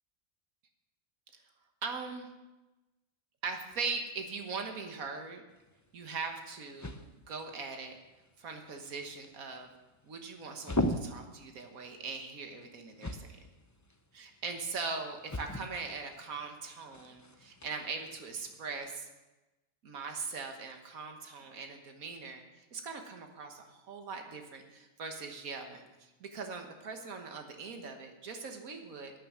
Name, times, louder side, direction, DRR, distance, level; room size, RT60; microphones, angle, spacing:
voice 1, 1.8-2.3 3.4-5.4 5.9-8.0 8.4-9.7 10.0-13.4 14.1-19.1 19.8-22.4 22.7-25.8 26.2-29.1, right 4 dB, 85° right, 4 dB, 1.8 m, -40 dB
sound 1, 5.5-18.9, left 1 dB, 20° left, 0.5 m, -42 dB
12.5 x 9.3 x 7.2 m, 1.1 s
omnidirectional pair, 1.4 m